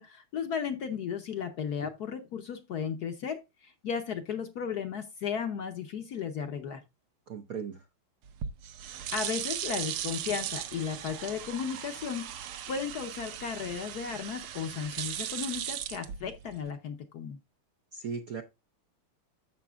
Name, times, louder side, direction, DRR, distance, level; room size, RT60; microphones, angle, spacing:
voice 1, 0.0-6.8 9.1-17.4, left 7 dB, 60° left, 1.1 m, -35 dB
voice 2, 7.3-7.8 17.9-18.4, right 6 dB, 65° right, 0.9 m, -37 dB
sound 1, 8.2-16.7, right 10 dB, 80° right, 1.7 m, -38 dB
11.0 x 7.6 x 2.3 m
omnidirectional pair, 2.3 m